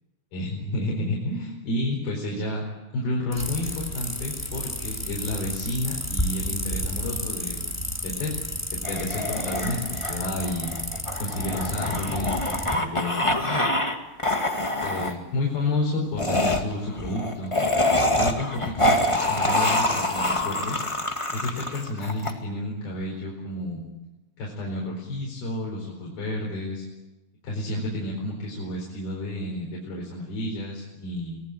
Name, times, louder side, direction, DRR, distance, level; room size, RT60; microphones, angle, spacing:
voice 1, 0.3-2.6 2.9-7.6 8.0-8.3 8.9-10.7 11.2-13.3 14.8-17.6 17.8-20.8 21.3-23.8 24.4-26.9 27.4-31.4, left 1 dB, 65° left, -2 dB, 6.3 m, -31 dB
sound 1, 3.3-12.7, equal, 5° left, 2.0 m, -32 dB
sound 2, 8.8-13.9 14.2-15.1 16.2-22.3, left 1 dB, 20° left, 0.7 m, -25 dB
26.0 x 19.5 x 9.0 m, 1.0 s
omnidirectional pair, 4.7 m